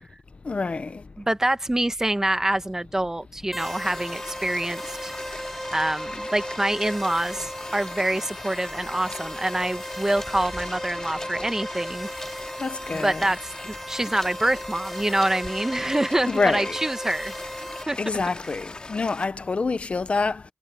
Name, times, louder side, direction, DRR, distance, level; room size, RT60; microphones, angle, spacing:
voice 1, 0.4-1.0 12.6-13.2 16.3-16.8 18.0-20.4, left 4 dB, 75° left, 1.1 m, -26 dB
voice 2, 1.2-5.4 5.7-12.1 12.9-17.6 17.9-18.0, right 1 dB, 25° right, 1.4 m, -26 dB
sound 1, 3.5-17.8, equal, 5° right, 0.8 m, -36 dB
sound 2, 3.6-19.3, left 2 dB, 45° left, 4.9 m, -40 dB
sound 3, 9.9-15.5, left 1 dB, 20° left, 6.7 m, -46 dB
wide cardioid pair, 75°, 2 cm